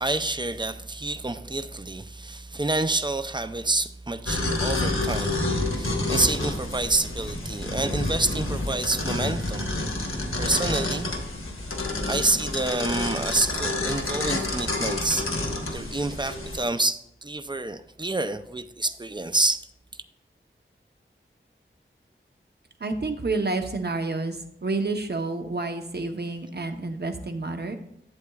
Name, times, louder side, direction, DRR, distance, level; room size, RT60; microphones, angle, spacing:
voice 1, 0.0-9.7 10.4-11.1 12.1-19.6, right 2 dB, 20° right, 0.5 m, -28 dB
sound 1, 4.3-16.6, left 2 dB, 90° left, 1.2 m, -29 dB
voice 2, 22.8-27.8, right 3 dB, 55° right, 0.9 m, -29 dB
11.5 x 7.8 x 2.4 m
wide cardioid pair, 60°, 21 cm